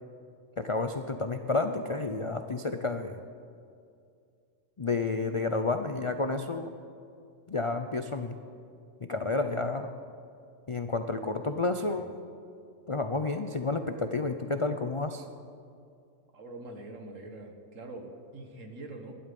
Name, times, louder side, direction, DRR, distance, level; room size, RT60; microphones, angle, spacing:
voice 1, 0.6-3.2 4.8-6.7 7.5-8.3 9.1-9.9 10.7-12.1 12.9-15.2, left 3 dB, 50° left, 7 dB, 0.3 m, -30 dB
voice 2, 16.3-19.2, right 2 dB, 60° right, 4 dB, 1.9 m, -44 dB
21.0 x 11.5 x 5.4 m, 2.4 s
omnidirectional pair, 1.5 m